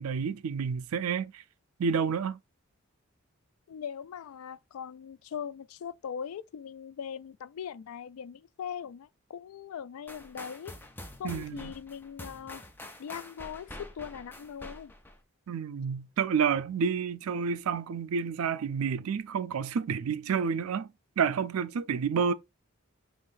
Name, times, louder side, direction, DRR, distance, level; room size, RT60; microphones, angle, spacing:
voice 1, 0.0-1.4 1.8-2.4 11.2-11.7 15.5-20.9 21.2-22.3, right 6 dB, 90° right, 0.4 m, -29 dB
voice 2, 3.7-10.8 11.2-12.6 13.0-14.9, left 8 dB, 85° left, 0.3 m, -40 dB
sound 1, 10.1-15.2, left 1 dB, 10° left, 0.4 m, -46 dB
5.5 x 3.0 x 2.5 m
head